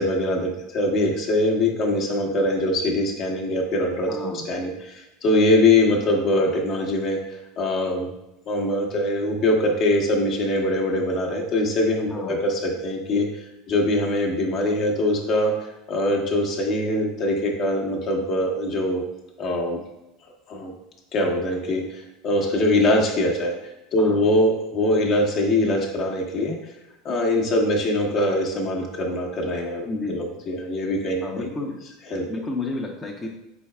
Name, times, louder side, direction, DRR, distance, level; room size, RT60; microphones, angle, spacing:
voice 1, 0.0-8.1 8.5-15.5 15.9-19.0 19.4-19.8 20.5-20.7 21.1-26.7 27.0-31.5 32.1-32.2, left 1 dB, 50° left, 1 dB, 1.0 m, -23 dB
voice 2, 4.1-4.4 12.1-12.4 24.0-24.2 29.8-30.2 31.2-31.8 32.3-33.3, left 3 dB, 20° left, -2 dB, 0.6 m, -31 dB
4.6 x 4.5 x 2.2 m, 0.92 s
hypercardioid pair, 85°, 0 cm